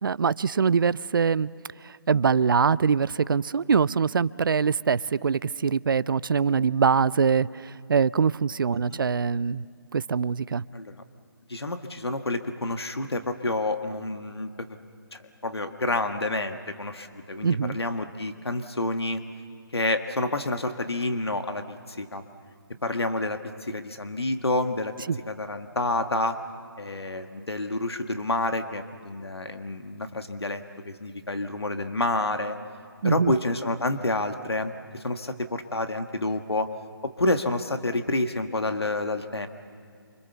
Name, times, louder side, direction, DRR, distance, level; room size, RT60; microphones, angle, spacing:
voice 1, 0.0-1.5 1.8-9.6 9.9-10.6 17.4-17.8 25.1-25.2 33.0-33.3, right 6 dB, 60° right, 20 dB, 0.5 m, -23 dB
voice 2, 10.7-11.0 11.5-14.7 15.1-19.2 19.7-22.2 22.8-24.9 25.3-26.4 26.8-32.6 33.0-36.7 37.0-39.5, left 2 dB, 90° left, 7 dB, 1.7 m, -29 dB
28.5 x 25.5 x 7.0 m, 2.3 s
figure-of-eight pair, 150°, 13 cm